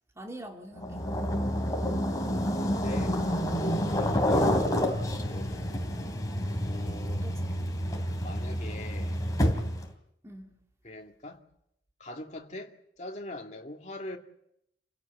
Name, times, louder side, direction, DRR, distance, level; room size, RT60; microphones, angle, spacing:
voice 1, 0.2-1.1 7.1-7.7 10.2-10.6, right 1 dB, 15° right, 2.4 m, -45 dB
sound 1, 0.8-9.9, equal, 20° left, 3.1 m, -29 dB
voice 2, 2.6-3.3 3.6-4.6 5.3-5.8 6.7-7.3 8.2-9.2 10.8-11.4 12.0-14.2, left 1 dB, 40° left, 2.4 m, -41 dB
29.0 x 17.0 x 8.4 m
head